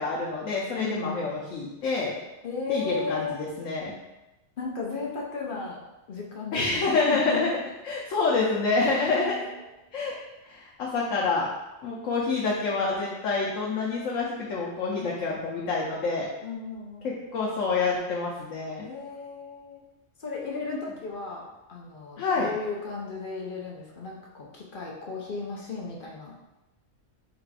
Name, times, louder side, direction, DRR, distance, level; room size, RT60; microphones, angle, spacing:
voice 1, 0.0-2.1 2.7-3.9 6.5-7.5 7.8-9.4 9.9-10.2 10.4-11.5 11.8-16.3 17.0-18.9 20.5-20.8 22.2-22.5, left 4 dB, 85° left, -4 dB, 1.1 m, -27 dB
voice 2, 0.8-1.1 2.4-3.5 4.6-5.8 6.1-7.6 9.0-9.5 15.0-15.1 16.4-17.1 18.8-19.8 20.2-26.3, left 4 dB, 50° left, -2 dB, 0.8 m, -35 dB
4.0 x 2.5 x 4.6 m, 1.0 s
omnidirectional pair, 1.3 m